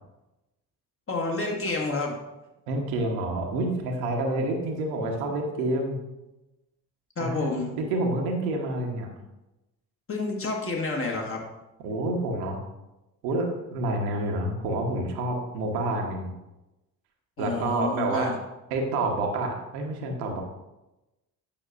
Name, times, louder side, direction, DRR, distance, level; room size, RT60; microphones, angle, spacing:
voice 1, 1.1-2.2 7.2-7.7 10.1-11.4 17.4-18.4, left 3 dB, 25° left, 0 dB, 1.5 m, -29 dB
voice 2, 2.7-6.0 7.2-7.5 7.8-9.1 11.8-12.6 13.2-16.3 17.4-18.3 18.7-20.4, right 2 dB, 65° right, 1 dB, 1.2 m, -28 dB
8.6 x 5.9 x 2.5 m, 0.98 s
figure-of-eight pair, 50°, 48 cm